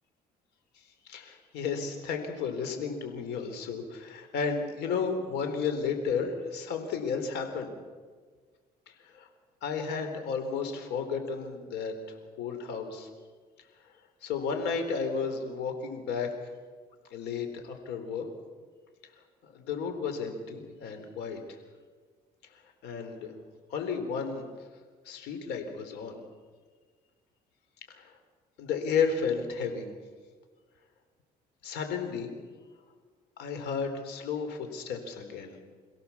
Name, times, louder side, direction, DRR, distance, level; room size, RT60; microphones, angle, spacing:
voice 1, 1.0-7.7 8.9-9.3 9.6-11.9 12.4-13.1 14.2-16.3 17.1-18.3 19.4-21.4 22.8-23.3 23.7-24.5 25.0-26.2 27.9-28.1 28.6-29.9 31.6-32.3 33.4-35.6, left 5 dB, 85° left, 6 dB, 3.9 m, -33 dB
28.5 x 16.5 x 7.2 m, 1.5 s
cardioid pair, 110°, 17 cm